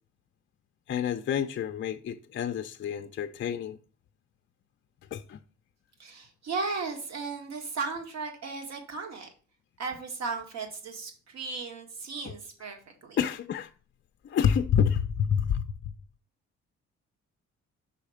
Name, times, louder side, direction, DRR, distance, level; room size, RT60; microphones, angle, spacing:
voice 1, 0.9-3.8 5.1-5.4 13.2-13.7 14.2-15.9, left 8 dB, 40° left, 0.4 m, -28 dB
voice 2, 6.0-9.3 9.8-13.2, right 4 dB, 60° right, 1.8 m, -36 dB
5.7 x 4.2 x 4.9 m
cardioid pair, 90°, 30 cm